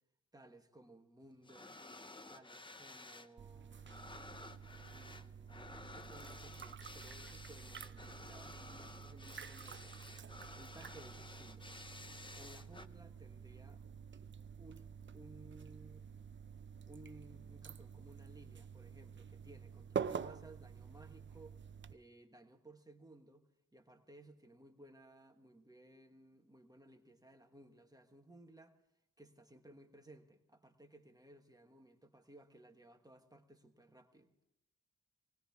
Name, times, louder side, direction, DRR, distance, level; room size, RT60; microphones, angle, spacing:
voice 1, 0.3-1.8 2.3-4.1 4.8-10.0 10.6-11.7 12.3-13.8 14.6-16.1 16.9-21.6 21.9-28.8 29.2-34.3, right 1 dB, 10° right, 5 dB, 1.4 m, -59 dB
sound 1, 1.4-3.3 3.6-12.9, left 2 dB, 15° left, 0.6 m, -53 dB
sound 2, 3.4-21.9, right 7 dB, 35° right, 0.5 m, -48 dB
20.5 x 19.0 x 3.5 m, 0.85 s
wide cardioid pair, 110°, 32 cm